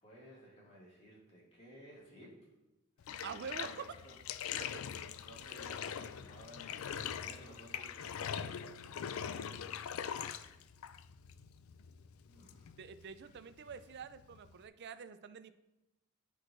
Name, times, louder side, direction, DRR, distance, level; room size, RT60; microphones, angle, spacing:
voice 1, 0.0-2.5 3.0-4.2 5.2-9.9 12.3-12.8, equal, 30° left, -5 dB, 2.2 m, -57 dB
Bathtub (filling or washing), 3.0-14.7, left 8 dB, 65° left, 0.3 m, -43 dB
voice 2, 3.1-3.9 12.8-15.5, right 6 dB, 50° right, 11 dB, 0.4 m, -46 dB
14.0 x 4.6 x 2.6 m, 0.96 s
head